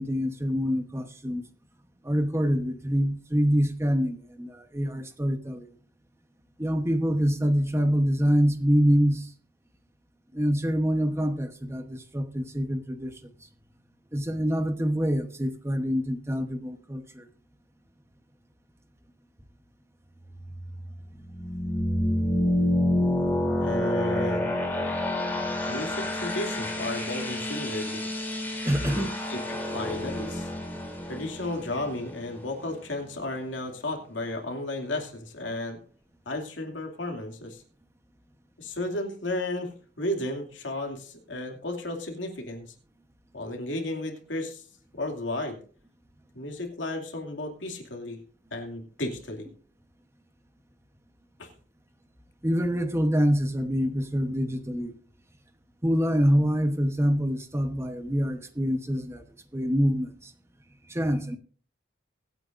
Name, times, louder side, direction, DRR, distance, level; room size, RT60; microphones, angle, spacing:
voice 1, 0.0-1.4 2.0-5.7 6.6-9.3 10.3-13.3 14.1-17.3 28.6-29.1 52.4-54.9 55.8-59.2 59.5-60.3 60.9-61.4, equal, 15° right, 1.0 m, -25 dB
sound 1, 20.3-32.9, left 1 dB, 10° left, 3.2 m, -29 dB
voice 2, 23.6-24.5 25.7-28.0 28.8-30.5 31.1-35.8 36.3-37.6 38.6-42.7 43.3-44.6 44.9-45.6 46.3-48.2 48.5-49.5 51.4-51.5, left 1 dB, 75° left, 2.5 m, -33 dB
24.0 x 8.9 x 2.6 m
head